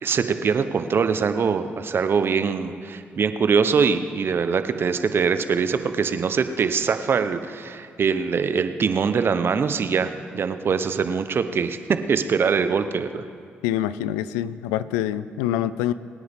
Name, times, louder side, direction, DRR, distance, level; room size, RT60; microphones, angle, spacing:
voice 1, 0.0-13.2, right 6 dB, 50° right, 10 dB, 0.9 m, -23 dB
voice 2, 13.6-15.9, left 12 dB, 90° left, 16 dB, 0.4 m, -25 dB
23.5 x 9.4 x 3.6 m, 2.4 s
hypercardioid pair, 50°, 5 cm